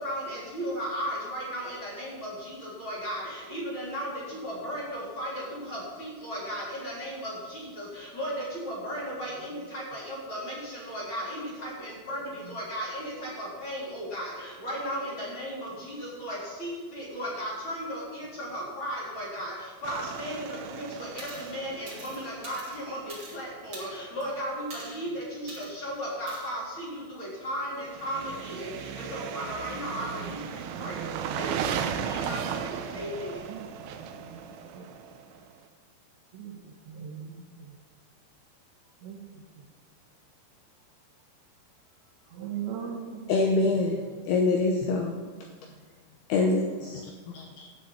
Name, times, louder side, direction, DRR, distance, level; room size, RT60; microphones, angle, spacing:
voice 1, 0.0-33.5, equal, 30° left, -5 dB, 3.4 m, -36 dB
sound 1, 19.8-23.7 27.8-35.5, right 8 dB, 90° right, 3.2 m, -36 dB
sound 2, 21.2-21.5 21.9-23.4 23.7-24.2 24.7-25.0 25.5-25.7 26.3-26.5, right 2 dB, 25° right, 2.5 m, -44 dB
voice 2, 33.9-34.9 36.3-37.8 39.0-39.7 42.3-43.2 45.6-45.8, right 8 dB, 70° right, 2 dB, 3.5 m, -41 dB
voice 3, 43.3-45.2 46.3-46.6 47.3-47.4, left 3 dB, 75° left, 1 dB, 2.4 m, -24 dB
12.5 x 6.5 x 8.3 m, 1.4 s
omnidirectional pair, 5.5 m